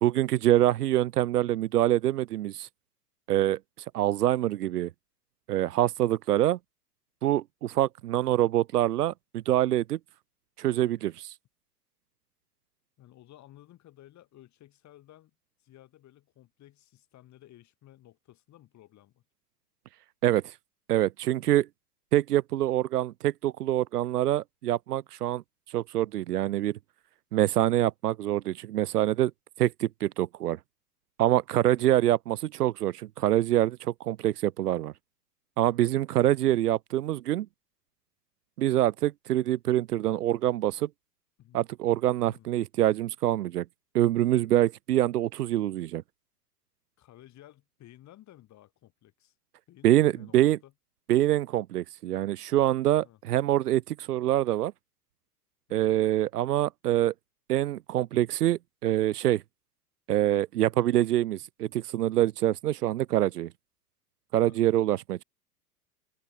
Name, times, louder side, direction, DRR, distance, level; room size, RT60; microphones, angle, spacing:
voice 1, 0.0-2.7 3.3-3.6 3.9-4.9 5.5-6.6 7.2-10.0 10.6-11.3 20.2-20.4 20.9-21.7 22.1-25.4 25.7-26.8 27.3-29.3 29.6-30.6 31.2-34.9 35.6-37.5 38.6-40.9 41.5-43.6 43.9-46.0 49.8-50.6 51.1-54.7 55.7-57.1 57.5-59.4 60.1-63.5 64.3-65.2, right 13 dB, 75° right, 0.7 m, -25 dB
voice 2, 13.0-15.3 15.6-19.2 21.4-21.6 31.7-32.0 41.4-41.6 42.2-42.5 45.7-45.8 47.0-49.3 49.7-50.7 53.0-53.2 55.7-56.0 64.3-64.6, left 14 dB, 35° left, 7.5 m, -55 dB
open air
hypercardioid pair, 95°, 47 cm